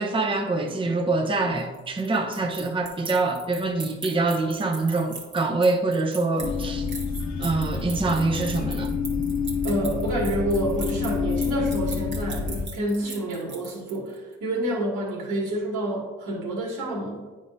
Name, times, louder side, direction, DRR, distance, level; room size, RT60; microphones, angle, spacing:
voice 1, 0.0-6.9 7.4-8.9, right 3 dB, 15° right, 3 dB, 0.7 m, -25 dB
sound 1, 1.6-14.2, right 3 dB, 40° right, 1.5 m, -40 dB
sound 2, 6.4-12.6, left 5 dB, 60° left, 1.0 m, -28 dB
voice 2, 9.6-17.2, right 1 dB, 85° right, -3 dB, 2.2 m, -28 dB
9.1 x 4.9 x 2.6 m, 1.2 s
cardioid pair, 90°, 30 cm